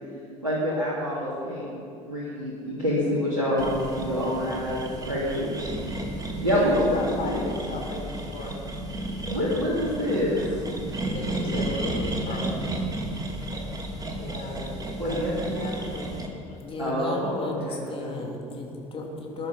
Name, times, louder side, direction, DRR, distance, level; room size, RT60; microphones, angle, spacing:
voice 1, 0.4-1.7 2.0-4.8 5.1-5.5 6.4-7.5 9.3-10.4 14.9-15.6 16.8-18.1, equal, 90° right, -8 dB, 2.8 m, -27 dB
sound 1, 3.6-16.3, right 1 dB, 20° right, 2.6 m, -33 dB
voice 2, 6.5-8.6 9.0-9.5 10.5-10.6 11.1-12.8 13.5-13.7 14.2-16.2 16.5-16.6, left 2 dB, 50° left, -1 dB, 4.8 m, -36 dB
voice 3, 16.6-19.5, left 2 dB, 30° left, 0 dB, 3.4 m, -34 dB
21.0 x 11.0 x 5.4 m, 2.4 s
figure-of-eight pair, 60°, 17 cm